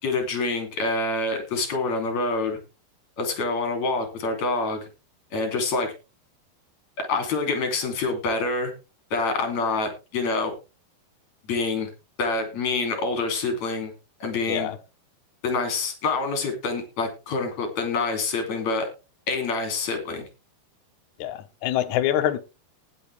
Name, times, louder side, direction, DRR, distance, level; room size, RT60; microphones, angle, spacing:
voice 1, 0.0-2.6 3.2-4.8 5.3-5.9 7.0-8.7 9.1-10.5 11.4-11.9 12.2-13.9 14.2-14.7 15.4-18.9 19.3-20.3, left 3 dB, 45° left, 3.9 m, -26 dB
voice 2, 21.2-22.4, left 11 dB, 65° left, 2.0 m, -25 dB
19.0 x 6.9 x 3.4 m
omnidirectional pair, 4.6 m